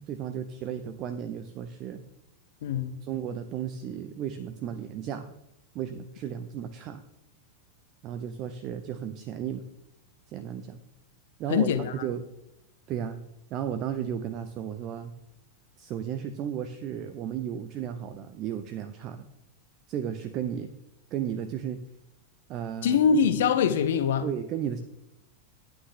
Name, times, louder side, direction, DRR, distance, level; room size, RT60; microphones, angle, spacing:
voice 1, 0.0-2.0 3.0-5.3 5.7-7.0 8.0-9.6 10.3-10.8 11.4-11.7 12.0-12.2 12.9-13.2 13.5-15.1 15.8-19.3 19.9-20.7 21.1-21.8 22.5-23.0 24.2-24.8, right 9 dB, 35° right, 0.7 m, -34 dB
voice 2, 2.6-2.9 11.5-12.1 22.8-24.3, left 7 dB, 60° left, 1.0 m, -23 dB
11.0 x 8.8 x 3.7 m
figure-of-eight pair, 90°, 0 cm